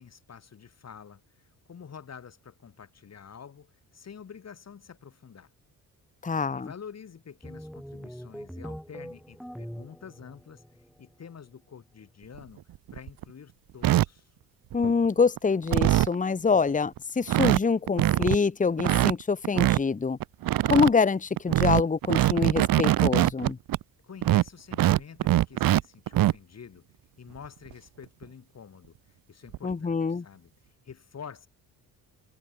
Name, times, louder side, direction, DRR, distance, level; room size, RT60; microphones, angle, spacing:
voice 1, 0.0-5.5 6.5-10.6 11.0-12.6 12.9-14.3 24.0-26.9 27.2-31.5, left 7 dB, 45° left, 7.3 m, -48 dB
voice 2, 6.2-6.7 14.7-20.2 20.7-23.6 29.6-30.2, left 5 dB, 20° left, 1.4 m, -25 dB
sound 1, 7.4-11.0, equal, ahead, 3.6 m, -42 dB
sound 2, 12.4-12.5 12.9-13.2 13.8-14.1 14.7-15.1 15.4-15.5 15.7-16.2 16.7-16.8 17.0-17.1 17.3-17.6 17.9-18.4 18.8-19.8 20.2-20.9 21.4-23.8 24.2-25.8 26.1-26.3 27.7-27.8 28.2-28.3 29.5-29.7, right 14 dB, 65° right, 0.9 m, -22 dB
cardioid pair, 115°, 37 cm